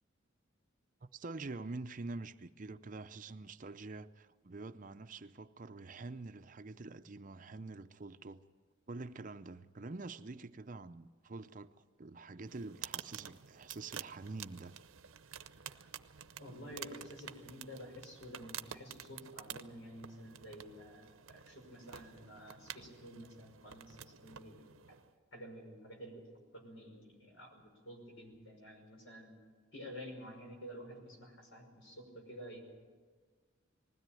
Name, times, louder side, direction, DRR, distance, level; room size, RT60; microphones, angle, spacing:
voice 1, 1.0-8.4 8.9-11.7 12.0-14.8, right 3 dB, 40° right, 0.6 m, -46 dB
sound 1, 12.5-25.1, right 9 dB, 90° right, 0.8 m, -50 dB
voice 2, 16.4-25.0 25.3-26.2 26.5-29.3 29.7-32.6, equal, 80° left, 5.5 m, -50 dB
20.5 x 16.5 x 9.1 m
head